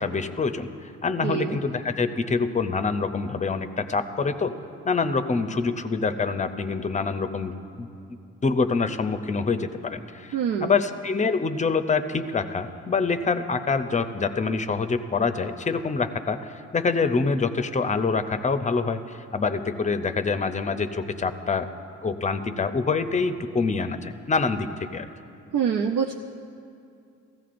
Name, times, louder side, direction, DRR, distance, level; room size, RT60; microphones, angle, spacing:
voice 1, 0.0-4.5 4.8-10.4 10.6-21.7 22.0-25.1, left 4 dB, 25° left, 9 dB, 0.6 m, -26 dB
voice 2, 1.2-1.6 10.3-10.8 25.5-26.1, right 7 dB, 80° right, 1 dB, 0.6 m, -25 dB
17.0 x 15.0 x 2.5 m, 2.5 s
cardioid pair, 90°, 30 cm